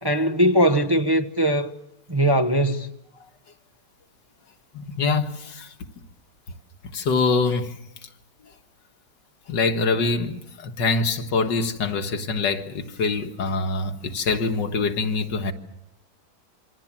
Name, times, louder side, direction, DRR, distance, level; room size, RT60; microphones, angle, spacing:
voice 1, 0.0-1.7 2.1-2.9, equal, 20° right, 0.8 m, -20 dB
voice 2, 4.7-5.7 6.9-7.8 9.5-15.5, left 4 dB, 90° left, 2.3 m, -24 dB
27.5 x 24.5 x 7.4 m
omnidirectional pair, 1.8 m